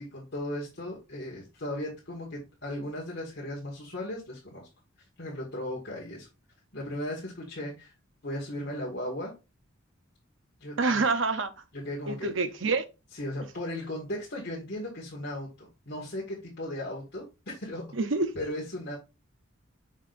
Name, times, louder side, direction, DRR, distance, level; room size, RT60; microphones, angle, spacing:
voice 1, 0.0-4.7 5.2-6.3 6.7-7.9 8.2-9.3 10.6-11.1 11.8-12.3 13.1-17.8 18.4-19.0, left 1 dB, 55° left, 1.9 m, -36 dB
voice 2, 10.8-11.5 12.1-12.8 17.9-18.3, right 3 dB, 65° right, 0.8 m, -26 dB
6.2 x 6.1 x 2.6 m
head